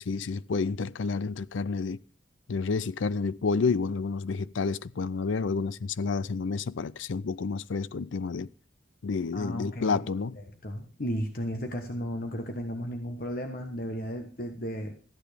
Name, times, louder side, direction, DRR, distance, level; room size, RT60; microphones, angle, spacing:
voice 1, 0.0-2.0 2.5-8.5 9.0-10.4, left 4 dB, 80° left, 0.5 m, -30 dB
voice 2, 9.3-10.0 10.6-15.0, equal, 45° left, 1.3 m, -34 dB
14.0 x 9.4 x 5.1 m
head